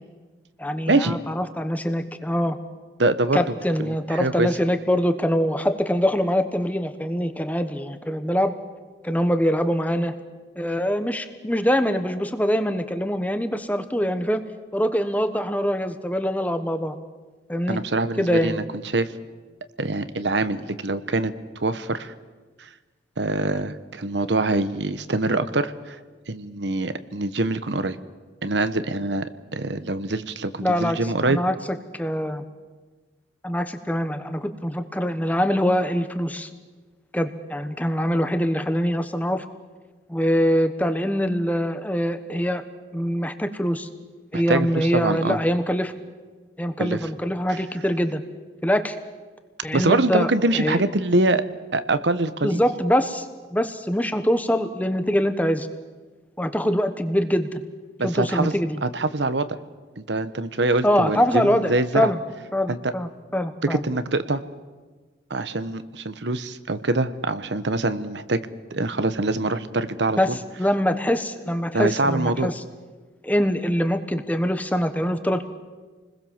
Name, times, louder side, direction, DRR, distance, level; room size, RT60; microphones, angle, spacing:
voice 1, 0.6-2.6 3.3-8.5 9.0-10.1 10.6-14.4 14.7-17.0 17.5-17.8 18.2-18.6 30.6-31.0 31.2-31.5 31.9-32.4 33.4-36.5 37.1-39.4 40.1-42.6 42.9-43.9 44.3-45.9 46.6-48.2 48.6-49.0 49.6-50.8 52.4-53.3 53.5-55.7 56.4-57.6 58.0-58.8 60.8-62.2 62.5-63.8 70.2-72.5 73.2-75.4, equal, 10° left, 9 dB, 1.2 m, -23 dB
voice 2, 3.0-3.4 3.8-4.5 17.7-19.1 19.8-21.3 21.6-22.1 22.6-22.7 23.2-26.0 26.3-28.0 28.4-31.4 44.3-45.4 46.8-47.0 49.7-51.4 51.7-52.6 58.0-58.5 58.8-59.5 60.0-62.1 62.7-62.8 63.6-64.4 65.3-68.4 68.7-70.4 71.7-72.5, right 2 dB, 80° right, 12 dB, 1.1 m, -24 dB
28.5 x 20.5 x 7.3 m, 1.3 s
head